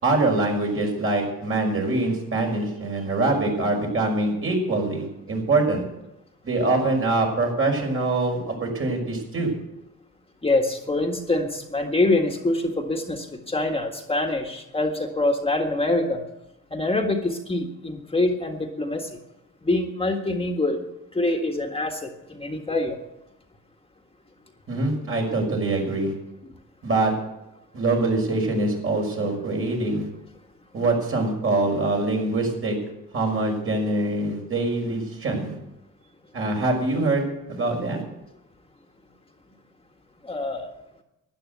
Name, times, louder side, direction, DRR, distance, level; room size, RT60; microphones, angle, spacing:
voice 1, 0.0-5.8 6.4-9.5 24.7-26.1 26.8-27.1 27.7-30.1 30.7-32.8 33.1-35.6 36.3-38.0, right 2 dB, 45° right, 1 dB, 5.8 m, -24 dB
voice 2, 10.4-16.2 16.7-19.2 19.6-20.8 21.1-23.0 40.2-40.7, left 2 dB, 20° left, 3 dB, 1.7 m, -25 dB
12.5 x 10.5 x 8.2 m, 0.90 s
cardioid pair, 90°, 30 cm